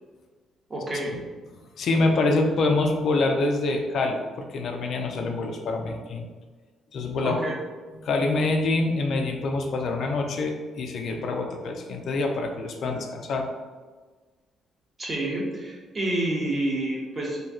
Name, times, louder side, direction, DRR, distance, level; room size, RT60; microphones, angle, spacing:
voice 1, 0.7-1.2 7.2-7.5 15.0-17.4, right 1 dB, 30° right, -3 dB, 0.8 m, -28 dB
voice 2, 1.8-6.3 6.9-7.4 8.0-13.5, left 3 dB, 65° left, 3 dB, 0.3 m, -25 dB
3.0 x 2.6 x 2.3 m, 1.4 s
cardioid pair, 90°, 0 cm